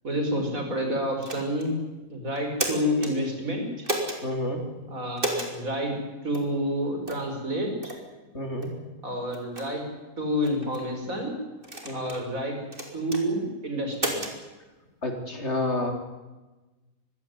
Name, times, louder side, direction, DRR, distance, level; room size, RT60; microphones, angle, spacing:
voice 1, 0.0-1.7 2.1-3.9 4.9-6.0 6.2-7.7 9.0-9.9 10.2-11.3 11.9-12.6 12.9-14.2, equal, 75° right, 3 dB, 5.7 m, -29 dB
sound 1, 1.2-1.7 2.4-3.1 3.8-4.2 5.2-5.5 6.3-6.5 7.1-7.3 7.8-8.0 8.6-8.7 9.3-9.7 10.4-10.8 11.6-12.2 12.7-13.2 13.9-14.4, right 1 dB, 40° right, 3.9 m, -31 dB
voice 2, 4.2-4.6 8.3-8.7 11.9-12.1 15.0-15.9, left 1 dB, 50° left, 4 dB, 3.8 m, -29 dB
24.0 x 16.0 x 9.8 m, 1.2 s
omnidirectional pair, 1.5 m